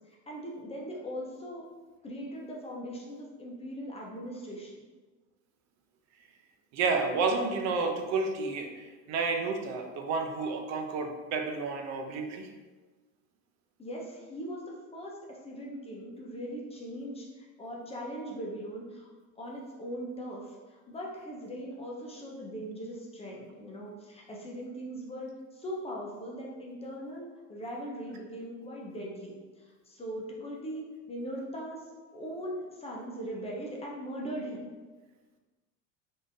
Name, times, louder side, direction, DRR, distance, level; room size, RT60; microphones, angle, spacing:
voice 1, 0.1-1.6 2.0-4.8 13.8-19.1 19.4-31.8 32.1-34.6, equal, 15° left, -3 dB, 0.5 m, -40 dB
voice 2, 6.7-12.5, right 4 dB, 50° right, 4 dB, 0.5 m, -31 dB
3.6 x 2.6 x 2.6 m, 1.3 s
supercardioid pair, 115°, 35 cm